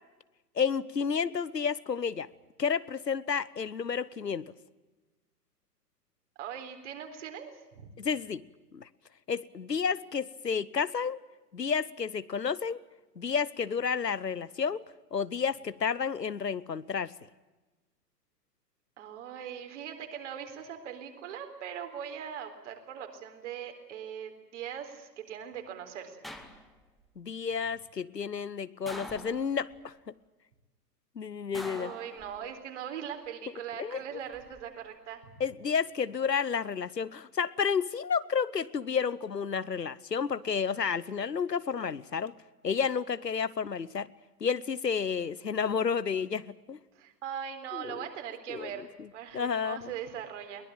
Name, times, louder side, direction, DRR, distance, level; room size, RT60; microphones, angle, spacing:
voice 1, 0.6-2.3 2.6-4.5 8.0-8.4 8.7-8.9 9.3-11.2 11.5-12.8 13.2-14.8 15.1-17.1 27.2-30.1 31.2-31.9 33.8-34.0 35.4-42.3 42.6-44.1 44.4-46.8 47.7-48.0 48.5-48.7 49.3-49.9, left 6 dB, 80° left, 17 dB, 1.0 m, -31 dB
voice 2, 6.4-7.9 19.0-26.2 31.8-35.4 46.9-50.6, right 9 dB, 45° right, 6 dB, 4.0 m, -40 dB
sound 1, 26.2-27.0 28.9-29.8 31.5-32.7 34.1-34.6, equal, ahead, 1.2 m, -45 dB
22.0 x 20.0 x 8.9 m, 1.2 s
figure-of-eight pair, 115°, 49 cm